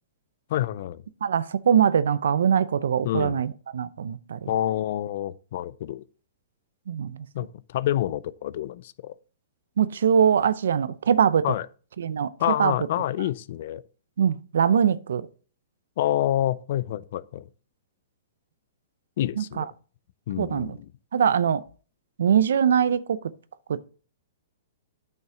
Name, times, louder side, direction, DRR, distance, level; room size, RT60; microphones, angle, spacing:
voice 1, 0.5-1.0 3.0-3.4 4.5-6.0 7.3-9.2 11.4-11.7 12.4-13.8 16.0-17.4 19.2-19.7 20.3-20.9, left 12 dB, 55° left, 0.4 m, -27 dB
voice 2, 1.2-4.5 6.9-7.3 9.8-11.5 12.0-12.3 12.6-12.7 14.2-15.3 19.4-19.6 20.4-20.8 21.1-21.6 22.2-23.2 23.7-23.9, right 8 dB, 80° right, 0.5 m, -22 dB
9.2 x 5.5 x 3.7 m
hypercardioid pair, 140°, 0 cm